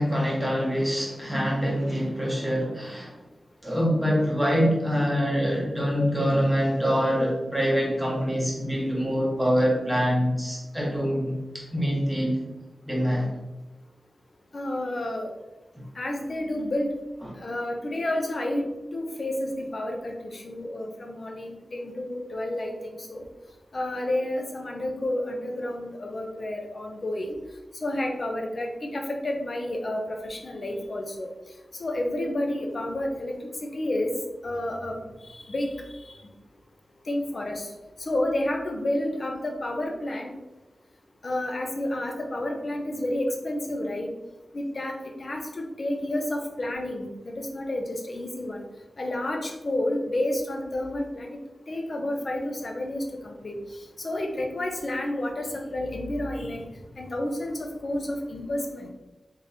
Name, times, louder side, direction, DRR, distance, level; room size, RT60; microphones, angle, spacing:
voice 1, 0.0-3.2 3.6-12.4 12.9-13.3 17.2-17.3, equal, ahead, -4 dB, 1.2 m, -25 dB
voice 2, 14.5-15.3 15.9-16.9 17.4-18.6 18.9-23.2 23.7-27.4 27.8-31.3 31.8-33.3 33.6-34.1 34.4-35.0 35.2-36.2 37.1-37.7 38.0-40.3 41.2-44.1 44.5-48.6 49.0-51.4 51.7-53.6 54.0-56.6 56.9-58.9, left 1 dB, 50° left, 3 dB, 0.6 m, -30 dB
3.7 x 3.4 x 2.7 m, 1.1 s
wide cardioid pair, 95°, 0 cm